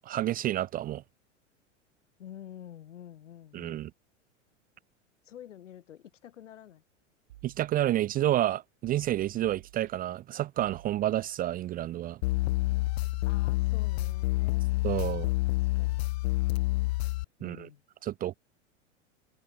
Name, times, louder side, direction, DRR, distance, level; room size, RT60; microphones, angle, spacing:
voice 1, 0.0-1.0 3.5-3.9 7.4-12.2 14.8-15.3 17.4-17.7 18.0-18.3, right 13 dB, 25° right, 0.5 m, -29 dB
voice 2, 2.2-3.8 5.2-6.8 13.2-14.7 15.0-16.1 17.4-17.8, left 10 dB, 75° left, 2.1 m, -48 dB
sound 1, 7.3-8.2 8.8-10.2 10.6-11.6 12.3-14.2, right 14 dB, 65° right, 4.7 m, -53 dB
sound 2, 12.2-17.2, left 20 dB, 55° left, 0.8 m, -28 dB
hypercardioid pair, 95°, 37 cm